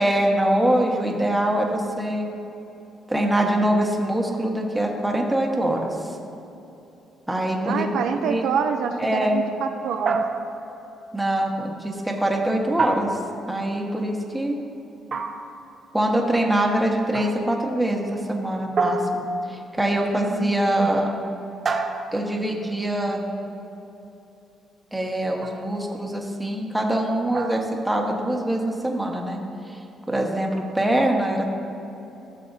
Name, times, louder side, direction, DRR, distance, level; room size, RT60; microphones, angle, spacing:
voice 1, 0.0-2.3 3.1-5.9 7.3-7.9 8.2-8.5 9.0-9.4 11.1-13.2 13.5-14.6 15.9-21.1 22.1-23.3 24.9-29.4 30.1-31.4, right 1 dB, 10° right, 0 dB, 1.3 m, -23 dB
voice 2, 7.6-10.2 20.1-20.9, right 7 dB, 80° right, 5 dB, 0.5 m, -27 dB
sound 1, 10.1-10.8 12.8-13.6 15.1-15.7 17.1-17.6 18.8-19.7 21.7-22.5 25.4-25.8 27.3-27.8, right 3 dB, 45° right, 0.7 m, -28 dB
16.0 x 6.6 x 2.7 m, 3.0 s
cardioid pair, 90°, 0 cm